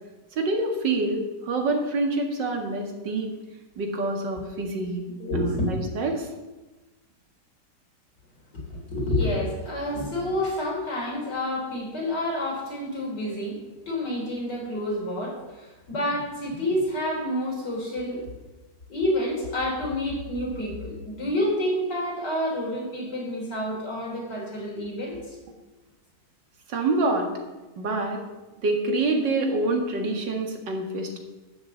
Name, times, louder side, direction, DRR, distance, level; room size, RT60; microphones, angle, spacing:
voice 1, 0.4-3.3 3.8-5.1 5.3-6.3 26.7-27.3 27.8-28.2 28.6-31.2, right 2 dB, 85° right, 3 dB, 2.4 m, -26 dB
voice 2, 5.2-5.7 8.5-13.6 13.9-18.3 18.9-25.4, left 1 dB, 70° left, -3 dB, 4.5 m, -28 dB
12.0 x 6.6 x 7.9 m, 1.1 s
omnidirectional pair, 1.9 m